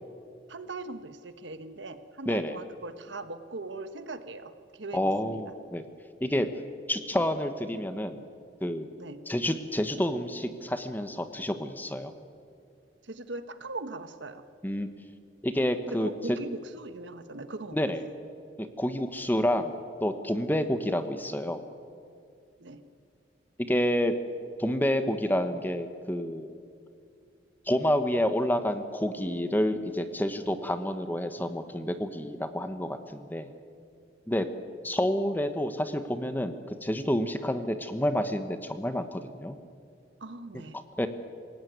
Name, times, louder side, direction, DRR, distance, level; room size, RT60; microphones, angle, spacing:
voice 1, 0.5-5.4 6.3-6.4 9.0-9.2 13.0-14.4 15.9-17.8 22.6-22.8 40.2-40.8, right 2 dB, 80° right, 10 dB, 1.3 m, -40 dB
voice 2, 2.3-2.6 4.9-5.8 6.2-6.5 6.9-8.2 8.6-8.9 9.3-12.1 14.6-14.9 15.4-16.4 17.7-18.0 18.6-19.8 20.0-21.6 23.6-24.1 24.6-26.5 27.7-33.5 34.3-34.5 34.8-39.6 41.0-41.1, equal, 10° left, 9 dB, 1.1 m, -29 dB
27.0 x 17.0 x 9.4 m, 2.4 s
head